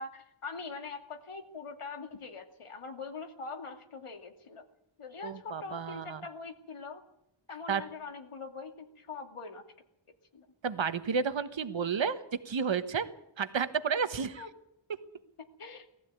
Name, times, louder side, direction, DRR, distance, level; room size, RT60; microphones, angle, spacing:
voice 1, 0.0-4.6 5.0-7.0 7.5-9.6 10.3-10.5 14.4-14.5 15.6-15.9, left 4 dB, 85° left, 5 dB, 2.6 m, -43 dB
voice 2, 5.2-6.2 7.7-7.8 10.6-13.1 13.4-14.5, right 6 dB, 65° right, 11 dB, 1.4 m, -31 dB
19.0 x 15.0 x 9.3 m, 0.81 s
wide cardioid pair, 90°, 50 cm